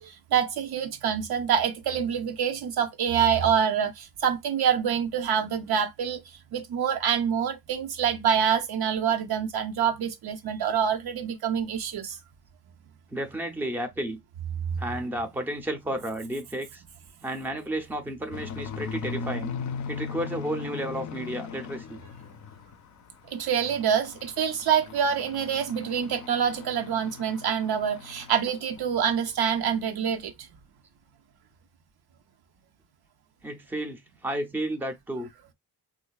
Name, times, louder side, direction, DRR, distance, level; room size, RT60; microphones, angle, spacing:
voice 1, 0.0-6.2 6.5-12.2 23.3-30.3, right 8 dB, 75° right, 0.7 m, -26 dB
voice 2, 13.1-14.2 14.8-16.8 17.2-19.5 19.9-22.0 33.4-35.3, right 1 dB, 5° right, 0.5 m, -32 dB
sound 1, 18.3-22.9 23.2-28.5 28.7-29.0 29.4-29.5 29.9-30.0, left 5 dB, 50° left, 0.5 m, -38 dB
3.7 x 2.6 x 2.2 m
wide cardioid pair, 115°, 38 cm